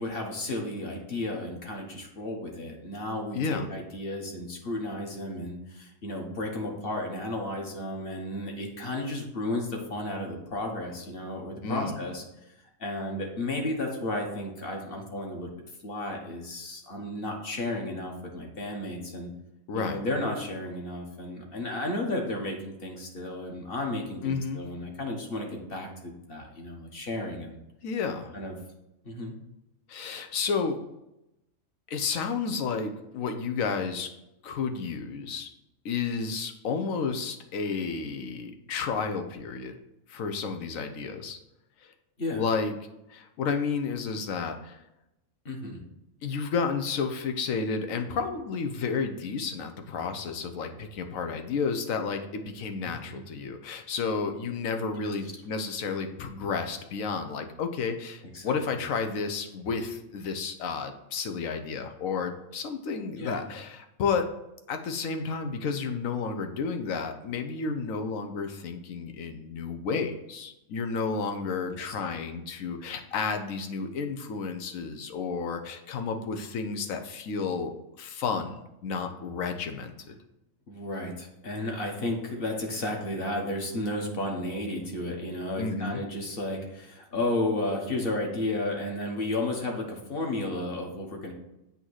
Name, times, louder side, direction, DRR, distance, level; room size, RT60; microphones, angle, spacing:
voice 1, 0.0-12.2 12.8-15.5 15.8-19.3 19.7-27.6 28.3-28.5 29.0-29.4 42.2-42.4 45.4-45.8 52.8-53.2 58.3-58.5 63.2-63.4 71.7-71.9 80.7-91.3, left 1 dB, 45° left, 1 dB, 1.3 m, -33 dB
voice 2, 3.3-3.7 11.6-12.0 19.7-20.0 24.2-24.6 27.8-28.3 29.9-30.8 31.9-34.1 34.4-35.5 35.8-39.7 40.1-41.4 41.8-41.9 42.3-42.7 43.1-44.8 46.2-64.3 64.7-80.2 85.6-86.0, left 5 dB, 85° left, 7 dB, 1.2 m, -31 dB
8.0 x 2.9 x 6.2 m, 0.89 s
omnidirectional pair, 1.4 m